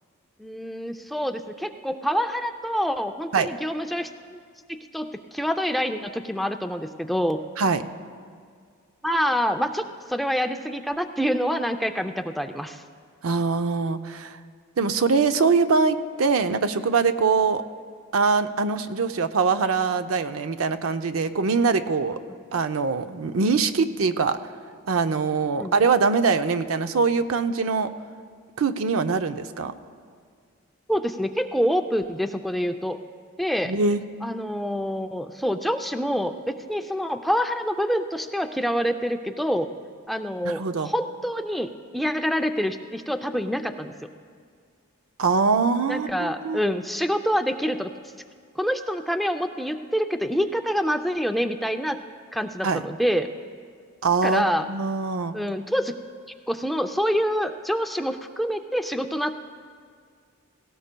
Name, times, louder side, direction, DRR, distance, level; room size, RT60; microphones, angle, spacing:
voice 1, 0.4-4.1 4.7-7.4 9.0-9.8 10.1-12.8 25.6-25.7 30.9-33.0 33.4-33.7 34.2-39.7 40.1-44.1 45.9-47.9 48.6-52.0 52.3-53.3 54.2-54.7 55.3-56.0 56.5-59.3, equal, ahead, 6 dB, 0.3 m, -26 dB
voice 2, 13.2-14.4 14.8-17.6 18.1-22.2 22.5-24.4 24.9-27.9 28.6-29.7 33.7-34.0 40.4-40.9 45.2-46.6 52.6-52.8 54.0-55.4, right 4 dB, 80° right, 9 dB, 0.6 m, -23 dB
18.0 x 17.0 x 2.2 m, 2.1 s
head